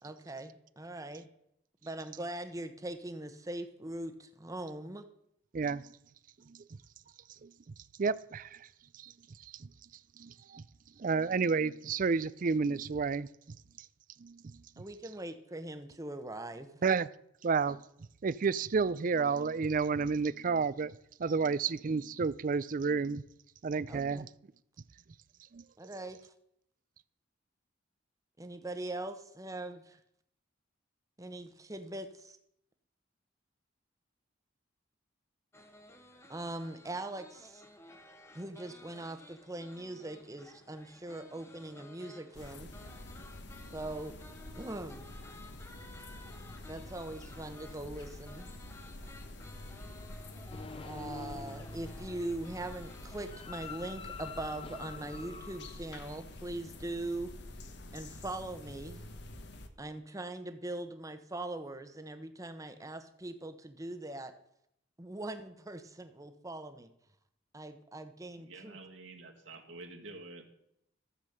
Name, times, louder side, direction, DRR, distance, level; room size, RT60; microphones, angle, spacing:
voice 1, 0.0-1.2 1.8-5.0 14.8-16.8 23.9-24.2 25.8-26.3 28.4-30.0 31.2-32.4 36.3-37.6 38.3-42.7 43.7-44.2 44.6-45.1 46.7-48.5 50.8-57.3 57.9-59.1 59.8-64.3 65.0-66.9 67.5-68.8, right 1 dB, 15° right, 1.0 m, -41 dB
voice 2, 8.0-8.7 9.0-9.1 9.5-9.7 10.2-10.6 11.0-13.3 14.2-14.5 16.8-17.1 17.4-17.8 18.2-20.9 21.2-23.2 23.6-24.3 25.5-25.6, right 5 dB, 45° right, 0.4 m, -31 dB
sound 1, 35.5-53.9, left 1 dB, 15° left, 1.0 m, -55 dB
sound 2, 42.3-59.7, left 1 dB, 60° left, 1.1 m, -47 dB
sound 3, 50.5-56.5, left 5 dB, 30° left, 0.6 m, -48 dB
voice 3, 68.4-70.5, right 3 dB, 75° right, 2.2 m, -49 dB
14.0 x 7.5 x 6.6 m
head